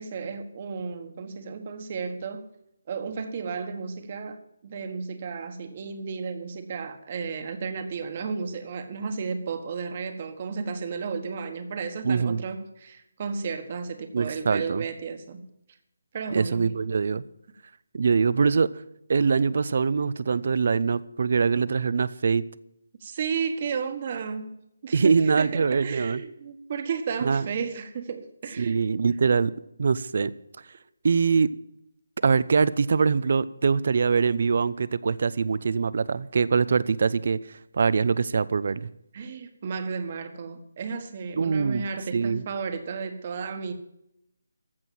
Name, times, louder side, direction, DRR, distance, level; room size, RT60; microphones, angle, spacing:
voice 1, 0.0-2.5 2.9-15.5 16.1-16.7 23.0-24.5 24.8-28.8 39.1-43.7, right 5 dB, 30° right, 1.5 m, -33 dB
voice 2, 12.0-12.4 14.1-14.8 16.3-17.2 17.9-18.7 19.1-22.4 24.9-26.2 27.2-27.4 28.6-29.5 29.8-30.3 31.0-31.5 32.2-38.9 41.4-41.9 42.1-42.4, right 5 dB, 50° right, 0.6 m, -23 dB
15.0 x 6.2 x 9.1 m
hypercardioid pair, 170°, 0 cm